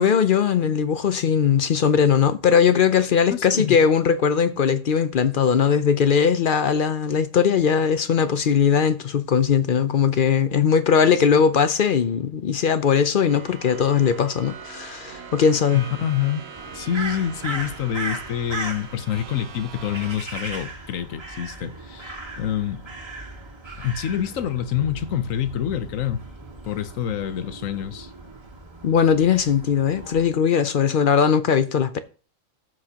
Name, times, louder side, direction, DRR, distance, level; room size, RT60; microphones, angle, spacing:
voice 1, 0.0-15.8 28.8-32.0, left 7 dB, 55° left, 0.6 m, -19 dB
voice 2, 3.3-3.8 15.7-16.4 16.7-22.9 23.8-26.2 26.6-28.1, left 10 dB, 85° left, 1.2 m, -27 dB
sound 1, 13.3-20.2, right 6 dB, 60° right, 1.1 m, -41 dB
Crow, 16.6-30.3, right 2 dB, 20° right, 1.8 m, -37 dB
14.5 x 6.1 x 2.8 m
omnidirectional pair, 1.3 m